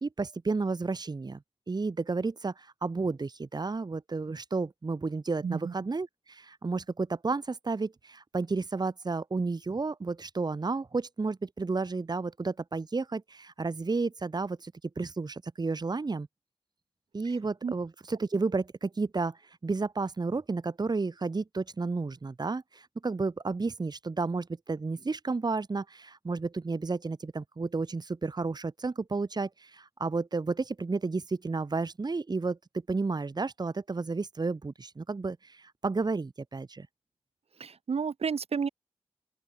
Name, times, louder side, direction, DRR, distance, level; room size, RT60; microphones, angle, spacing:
voice 1, 0.0-1.4 1.7-16.3 17.1-32.6 32.9-36.9, right 3 dB, 45° right, 1.5 m, -32 dB
voice 2, 5.4-5.7 17.6-17.7 37.6-38.7, right 6 dB, 80° right, 2.1 m, -31 dB
open air
wide cardioid pair, 80°, 10 cm